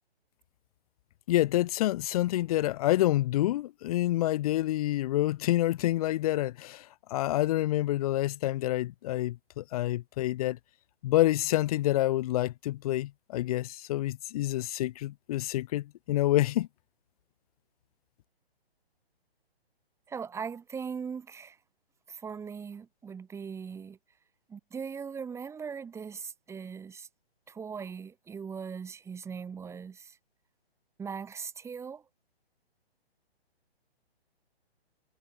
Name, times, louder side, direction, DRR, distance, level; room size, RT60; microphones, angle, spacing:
voice 1, 1.3-10.6 11.0-16.7, left 15 dB, 35° left, 1.7 m, -28 dB
voice 2, 20.1-21.6 22.1-24.0 24.5-27.1 27.5-30.2 31.0-32.0, right 6 dB, 10° right, 2.4 m, -39 dB
hypercardioid pair, 140°, 32 cm